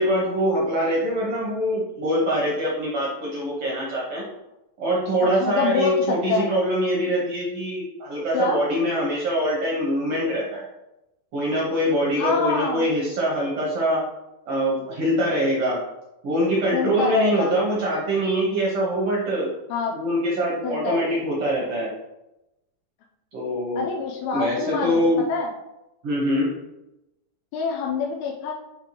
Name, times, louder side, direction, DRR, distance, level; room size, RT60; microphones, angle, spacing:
voice 1, 0.0-4.2 4.8-10.6 11.3-14.0 14.5-15.8 16.2-19.5 19.9-21.9 23.3-23.9 24.3-25.2 26.0-26.5, equal, 60° right, -5 dB, 1.6 m, -24 dB
voice 2, 5.4-6.5 8.3-8.6 12.2-12.9 16.7-17.5 19.7-19.9 20.6-21.0 23.8-25.5 27.5-28.5, left 5 dB, 85° left, 0 dB, 2.4 m, -25 dB
9.2 x 3.4 x 3.0 m, 0.92 s
omnidirectional pair, 4.5 m